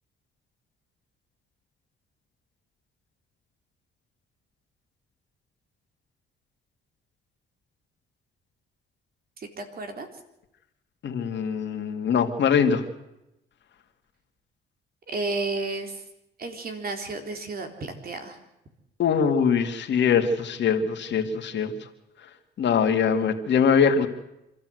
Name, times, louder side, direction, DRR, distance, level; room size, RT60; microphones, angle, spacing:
voice 1, 9.4-10.1 15.1-16.0 16.4-18.4, right 3 dB, 50° right, 5 dB, 3.6 m, -32 dB
voice 2, 11.0-12.8 19.0-21.7 22.6-24.1, left 6 dB, 65° left, 6 dB, 2.4 m, -22 dB
26.5 x 13.5 x 7.9 m, 0.89 s
cardioid pair, 90°, 20 cm